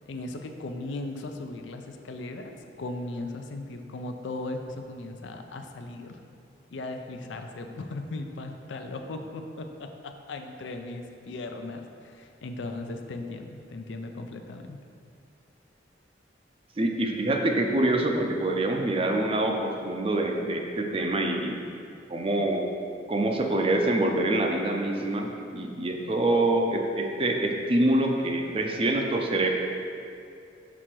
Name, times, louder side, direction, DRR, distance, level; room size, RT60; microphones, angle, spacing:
voice 1, 0.1-6.2 6.7-14.8, left 2 dB, 85° left, 5 dB, 0.5 m, -37 dB
voice 2, 16.8-21.6 22.1-22.6 23.1-29.5, right 1 dB, 30° right, 2 dB, 0.5 m, -25 dB
6.0 x 3.8 x 4.5 m, 2.5 s
head